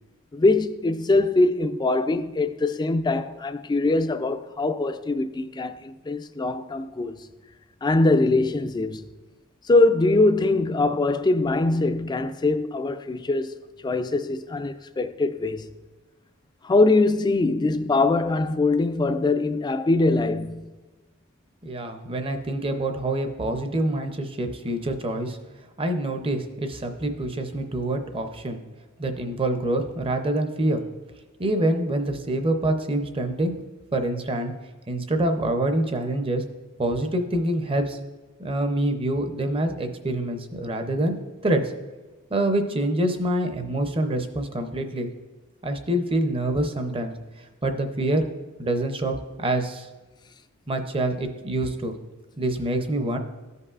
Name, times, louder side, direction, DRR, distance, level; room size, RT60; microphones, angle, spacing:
voice 1, 0.3-7.2 7.8-9.1 9.6-13.6 13.8-15.7 16.6-20.7, left 2 dB, 20° left, 0.3 m, -22 dB
voice 2, 21.6-25.4 25.8-28.6 29.0-30.8 31.4-33.5 33.9-34.5 34.9-36.4 36.8-38.0 38.4-41.1 41.4-41.6 42.3-45.1 45.6-47.1 47.6-48.2 48.6-49.9 50.7-51.9 52.4-53.2, right 1 dB, 25° right, 0.6 m, -26 dB
14.5 x 5.4 x 2.4 m
head